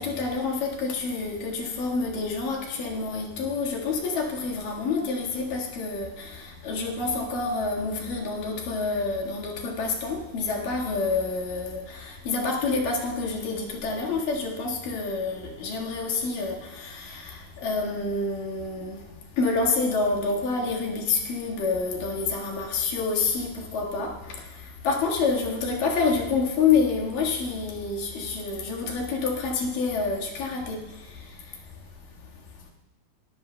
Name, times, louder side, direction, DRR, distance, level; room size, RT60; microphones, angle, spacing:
voice 1, 0.0-31.7, left 4 dB, 70° left, -2 dB, 3.3 m, -28 dB
21.5 x 13.0 x 2.2 m, 0.98 s
omnidirectional pair, 4.2 m